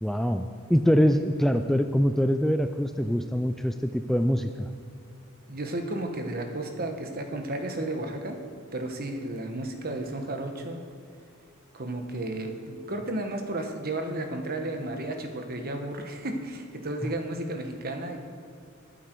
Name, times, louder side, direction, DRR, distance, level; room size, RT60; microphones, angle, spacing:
voice 1, 0.0-4.7 17.0-17.1, equal, ahead, 7 dB, 0.3 m, -24 dB
voice 2, 5.5-8.4 8.7-10.8 11.7-18.2, right 1 dB, 45° right, 5 dB, 1.2 m, -33 dB
20.5 x 8.2 x 4.6 m, 2.3 s
head